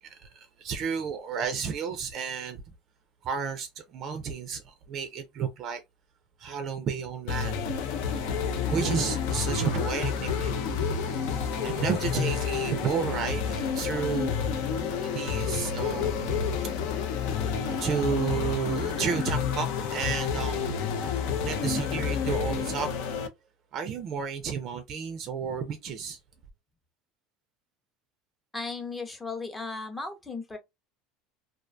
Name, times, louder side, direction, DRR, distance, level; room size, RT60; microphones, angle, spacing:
voice 1, 0.0-2.6 3.2-5.8 6.4-7.6 8.7-11.0 11.4-14.4 15.0-16.3 17.4-20.8 21.4-22.9 23.7-26.2, right 6 dB, 40° right, 0.4 m, -32 dB
sound 1, 7.3-23.3, left 7 dB, 70° left, 0.4 m, -29 dB
voice 2, 28.5-30.6, left 3 dB, 10° left, 0.6 m, -36 dB
2.3 x 2.2 x 2.5 m
cardioid pair, 140°, 0 cm